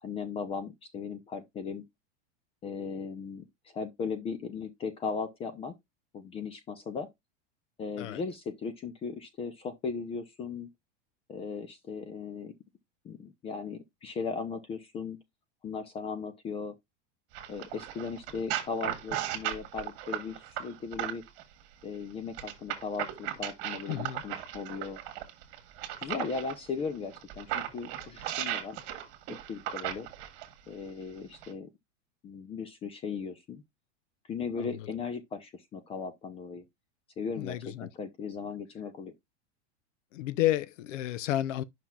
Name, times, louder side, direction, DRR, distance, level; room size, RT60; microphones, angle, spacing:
voice 1, 0.0-1.8 2.6-5.7 6.1-7.1 7.8-10.7 11.3-12.5 13.0-15.2 15.6-16.7 17.5-21.2 21.8-25.0 26.0-28.8 29.3-30.1 30.7-31.7 32.2-33.6 34.3-36.7 37.2-39.1, left 5 dB, 15° left, 0.4 m, -37 dB
sound 1, 17.3-21.4 22.3-26.5 27.1-30.5 31.3-31.5, right 12 dB, 50° right, 1.5 m, -36 dB
voice 2, 23.9-24.2 37.4-37.9 40.1-41.6, left 14 dB, 85° left, 0.7 m, -31 dB
9.0 x 5.8 x 2.3 m
supercardioid pair, 150°, 36 cm